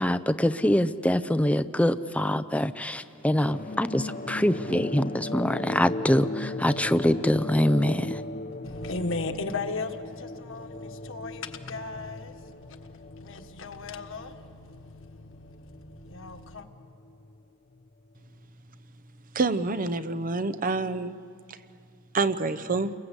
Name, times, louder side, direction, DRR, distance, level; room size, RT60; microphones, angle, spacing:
voice 1, 0.0-8.2, left 1 dB, 5° left, 0.6 m, -24 dB
sound 1, 3.2-18.1, left 2 dB, 40° left, 0.8 m, -39 dB
voice 2, 8.6-16.7, left 3 dB, 65° left, 1.5 m, -37 dB
voice 3, 19.3-21.1 21.5-21.6 22.1-22.9, right 3 dB, 40° right, 0.8 m, -27 dB
30.0 x 22.5 x 8.2 m
head